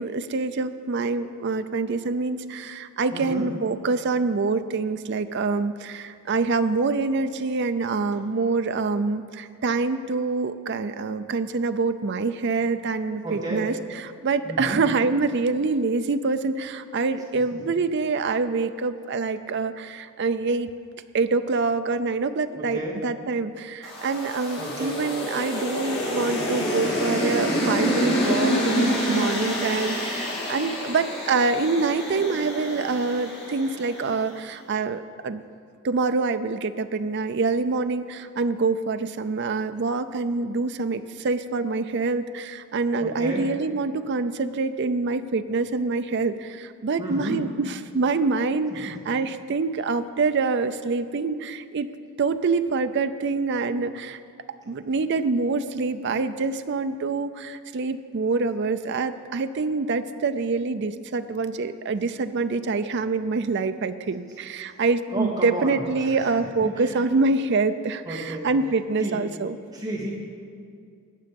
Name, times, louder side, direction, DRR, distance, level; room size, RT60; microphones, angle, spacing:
voice 1, 0.0-20.7 21.1-35.4 35.8-51.9 52.2-54.2 54.7-69.6, right 4 dB, 50° right, 10 dB, 0.4 m, -26 dB
voice 2, 3.1-3.5 13.2-13.6 14.4-14.8 17.5-17.6 22.6-23.0 24.6-24.9 43.0-43.4 47.0-47.4 48.8-48.9 64.6-64.8 65.1-65.8 66.2-66.3 66.6-67.0 68.0-68.5 69.0-69.2 69.7-70.1, right 1 dB, 15° right, -6 dB, 2.9 m, -32 dB
sound 1, 23.8-34.2, equal, 50° left, 2.6 m, -27 dB
19.5 x 7.6 x 5.3 m, 2.3 s
head